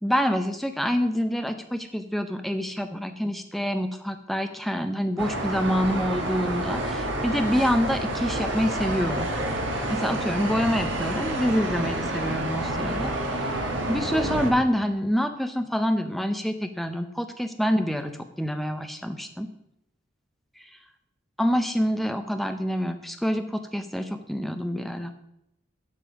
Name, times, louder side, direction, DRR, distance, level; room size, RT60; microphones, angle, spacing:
voice 1, 0.0-9.3 9.9-13.1 13.9-19.5 20.6-20.7 21.4-25.1, equal, ahead, 7 dB, 0.5 m, -26 dB
sound 1, 5.2-14.5, right 1 dB, 70° right, 1.4 m, -29 dB
8.5 x 5.3 x 6.1 m, 0.81 s
head